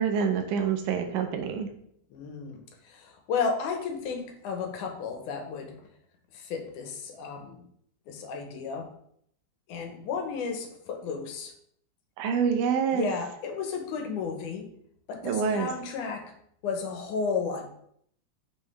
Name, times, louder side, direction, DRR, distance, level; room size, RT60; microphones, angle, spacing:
voice 1, 0.0-1.7 12.2-13.1 15.2-15.7, right 6 dB, 85° right, 5 dB, 2.3 m, -26 dB
voice 2, 2.1-5.8 6.3-7.6 8.1-8.9 9.7-11.5 12.9-14.7 15.1-16.2 16.6-17.7, left 5 dB, 85° left, 3 dB, 2.5 m, -33 dB
5.9 x 5.5 x 3.3 m, 0.67 s
omnidirectional pair, 3.5 m